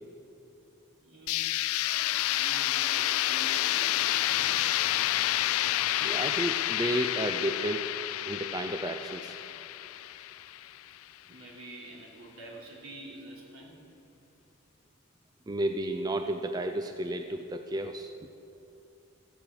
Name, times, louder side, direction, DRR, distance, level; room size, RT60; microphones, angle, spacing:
voice 1, 1.0-4.8 5.4-5.5 10.4-10.7 11.3-13.8, right 1 dB, 75° right, -3 dB, 3.3 m, -47 dB
sound 1, 1.3-11.0, left 14 dB, 90° left, 0.4 m, -29 dB
voice 2, 6.0-7.9 8.2-9.4 15.5-18.1, right 1 dB, 20° right, 6 dB, 0.4 m, -32 dB
15.0 x 10.5 x 7.6 m, 2.8 s
head